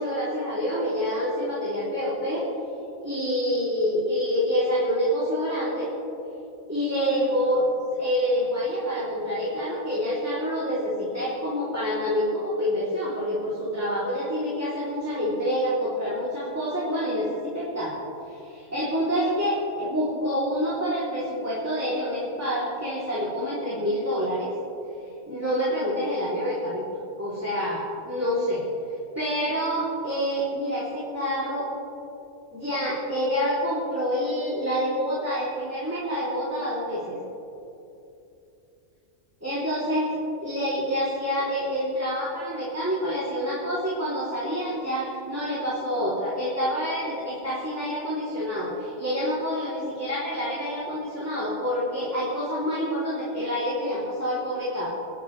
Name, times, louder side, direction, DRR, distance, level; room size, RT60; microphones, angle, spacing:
voice 1, 0.0-2.4 3.0-5.9 6.7-18.0 18.3-24.5 25.3-26.8 27.2-28.7 29.1-31.7 32.5-37.1 39.4-54.9, equal, 10° right, -9 dB, 2.9 m, -27 dB
26.0 x 11.5 x 3.2 m, 2.8 s
omnidirectional pair, 1.4 m